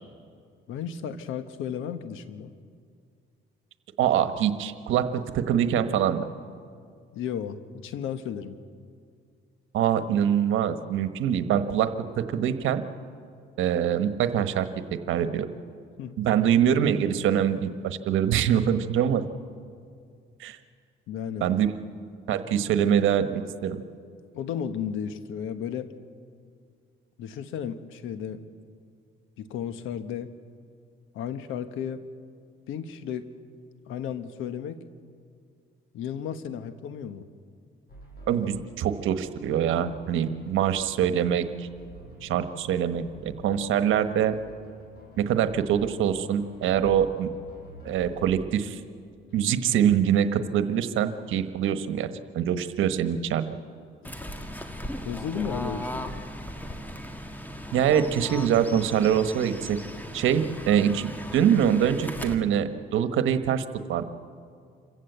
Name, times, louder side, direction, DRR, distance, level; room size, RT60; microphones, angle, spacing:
voice 1, 0.7-2.5 7.1-8.6 16.0-16.2 21.1-21.5 24.3-25.9 27.2-28.4 29.4-30.3 31.1-32.1 32.7-33.3 33.9-34.8 35.9-37.3 55.0-56.3, left 8 dB, 90° left, 10 dB, 1.3 m, -34 dB
voice 2, 4.0-6.3 9.7-12.8 13.6-15.5 16.2-19.2 20.4-20.6 21.4-21.7 22.3-23.8 38.3-41.7 42.2-44.4 45.2-47.3 47.8-48.8 49.3-52.1 52.3-53.4 57.7-59.8 60.1-63.6 63.9-64.0, right 9 dB, 85° right, 10 dB, 1.3 m, -24 dB
sound 1, 37.9-48.4, equal, 50° left, 7.1 m, -48 dB
Fowl / Bird, 54.0-62.3, equal, 10° left, 1.7 m, -37 dB
27.0 x 15.5 x 8.1 m, 2.2 s
cardioid pair, 90°, 20 cm